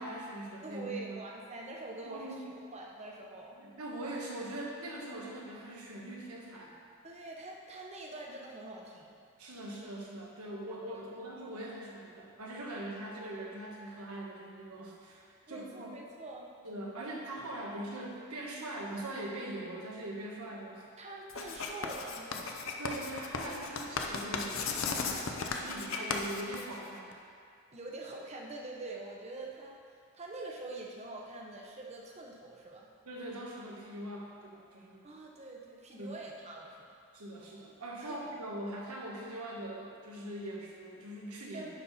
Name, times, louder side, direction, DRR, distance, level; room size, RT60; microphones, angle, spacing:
voice 1, 0.0-1.2 2.0-2.4 3.6-6.7 9.4-15.9 16.6-20.8 22.8-27.1 33.0-35.0 36.0-36.2 37.1-41.7, right 1 dB, 85° right, -2 dB, 1.3 m, -42 dB
voice 2, 0.6-3.6 7.0-9.2 15.4-16.6 21.0-22.6 27.7-32.9 35.0-36.9 38.0-38.2 41.5-41.7, right 2 dB, 30° right, -1 dB, 0.8 m, -45 dB
Writing, 21.3-27.1, left 4 dB, 65° left, 0.6 m, -36 dB
10.5 x 4.2 x 4.1 m, 2.2 s
head